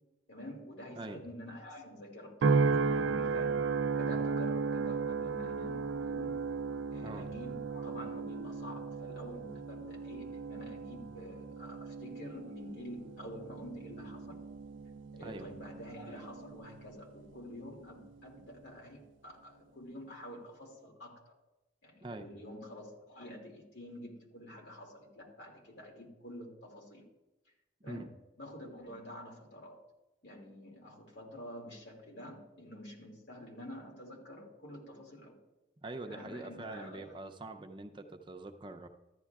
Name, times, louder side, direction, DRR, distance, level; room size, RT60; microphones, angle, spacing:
voice 1, 0.3-2.6 2.8-3.7 3.9-6.4 6.9-14.4 15.1-21.3 21.8-27.1 27.8-29.8 30.2-35.4 36.0-37.2, equal, 70° left, 0 dB, 2.5 m, -48 dB
sound 1, 2.4-16.9 17.4-17.8, right 4 dB, 90° right, 0.4 m, -35 dB
voice 2, 35.8-38.9, right 2 dB, 25° right, 5 dB, 0.5 m, -44 dB
14.0 x 11.0 x 2.4 m, 1.0 s
head